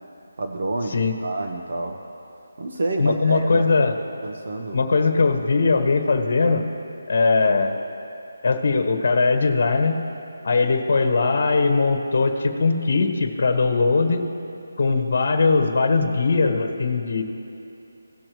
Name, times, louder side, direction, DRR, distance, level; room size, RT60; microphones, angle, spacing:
voice 1, 0.4-2.0 2.6-3.7 4.2-4.9, right 2 dB, 50° right, 3 dB, 0.9 m, -28 dB
voice 2, 3.0-4.0 4.7-6.6 7.1-7.8 8.4-10.0 10.4-14.2 14.8-17.2, left 4 dB, 45° left, 5 dB, 1.4 m, -20 dB
17.5 x 6.6 x 3.1 m, 2.8 s
figure-of-eight pair, 175°, 0 cm